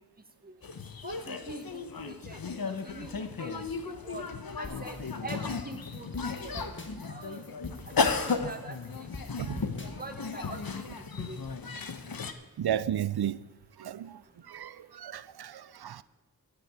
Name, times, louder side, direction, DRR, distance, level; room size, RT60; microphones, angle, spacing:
sound 1, 0.6-12.3, left 5 dB, 70° left, 1.0 m, -35 dB
voice 1, 1.0-2.4 2.6-4.2 4.6-6.1 6.4-6.5 7.0-7.5 8.0-9.1 9.8-10.8 11.2-11.4, right 2 dB, 25° right, 1.5 m, -44 dB
sound 2, 4.6-11.0, left 2 dB, 30° left, 1.8 m, -46 dB
voice 2, 12.6-13.4 13.8-14.2 14.5-16.0, right 10 dB, 85° right, 0.5 m, -33 dB
15.0 x 8.3 x 4.9 m
wide cardioid pair, 40°, 37 cm